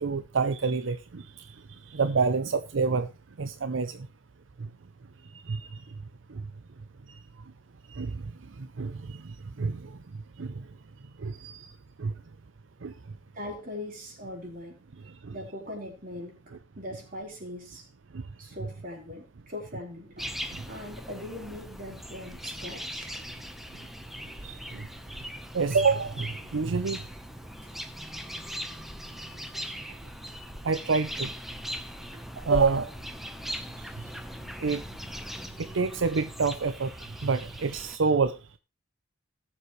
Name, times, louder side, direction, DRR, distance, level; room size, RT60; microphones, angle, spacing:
voice 1, 0.0-3.1 3.4-4.1 4.6-4.7 5.3-5.9 6.3-6.5 7.1-7.2 7.9-10.0 10.4-10.7 11.2-11.7 12.0-12.1 12.8-12.9 15.0-15.3 18.1-18.2 20.5-20.6 24.4-24.9 25.5-27.0 30.6-31.3 32.4-32.9 33.8-34.1 34.6-34.8 35.6-38.6, right 4 dB, 85° right, 0.6 m, -28 dB
voice 2, 13.3-14.8 15.3-16.4 16.8-17.9 18.4-20.3 20.7-23.1 27.6-27.8 29.3-29.4 29.7-29.8 32.1-32.2, left 1 dB, 50° right, 4.4 m, -41 dB
sound 1, 20.2-38.0, equal, ahead, 1.0 m, -40 dB
18.5 x 7.3 x 3.2 m
head